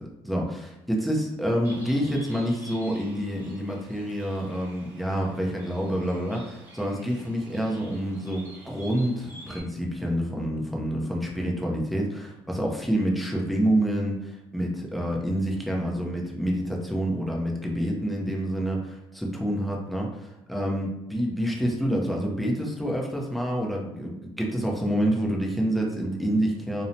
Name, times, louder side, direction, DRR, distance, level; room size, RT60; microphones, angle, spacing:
voice 1, 0.2-26.8, equal, ahead, -2 dB, 0.6 m, -27 dB
Bird, 1.6-9.6, right 1 dB, 20° right, 1.2 m, -48 dB
2.6 x 2.1 x 2.6 m, 0.91 s
supercardioid pair, 80°, 12 cm